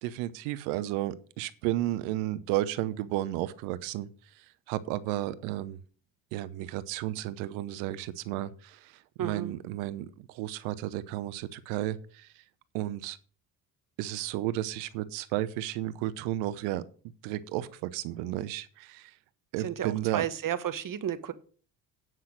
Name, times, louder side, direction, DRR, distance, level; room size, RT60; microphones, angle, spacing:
voice 1, 0.0-4.1 4.3-5.8 6.3-12.4 12.7-13.2 14.0-16.8 17.2-19.1 19.5-20.2, right 14 dB, 80° right, 15 dB, 0.9 m, -33 dB
voice 2, 9.2-9.5 19.6-21.3, right 10 dB, 45° right, 12 dB, 1.2 m, -32 dB
9.3 x 5.7 x 6.4 m, 0.42 s
supercardioid pair, 65°, 45 cm